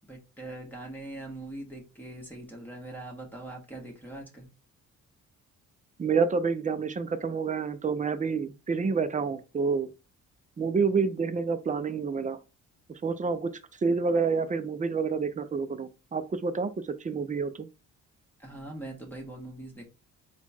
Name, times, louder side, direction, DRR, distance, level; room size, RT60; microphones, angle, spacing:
voice 1, 0.1-4.5 18.4-19.9, right 1 dB, 5° left, 1.5 m, -42 dB
voice 2, 6.0-9.9 10.6-12.4 13.0-13.5 13.8-16.7 17.0-17.7, right 5 dB, 25° right, 0.6 m, -28 dB
4.2 x 2.4 x 4.3 m
cardioid pair, 90°, 30 cm